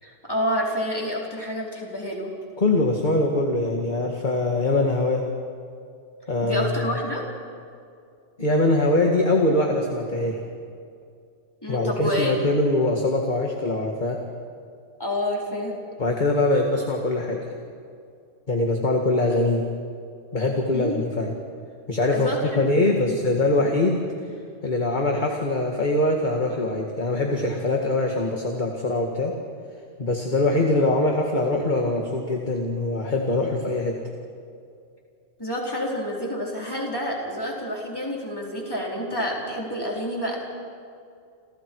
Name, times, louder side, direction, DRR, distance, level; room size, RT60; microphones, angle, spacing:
voice 1, 0.0-2.3 6.4-7.2 11.6-12.3 15.0-15.8 20.7-21.1 22.1-23.2 35.4-40.4, equal, 20° left, -3 dB, 4.5 m, -28 dB
voice 2, 2.6-5.2 6.3-6.9 8.4-10.4 11.7-14.2 16.0-17.5 18.5-19.7 20.3-21.3 21.9-24.0 24.6-29.3 30.0-34.0, left 2 dB, 40° left, 1 dB, 2.1 m, -23 dB
29.5 x 28.0 x 4.8 m, 2.3 s
omnidirectional pair, 1.3 m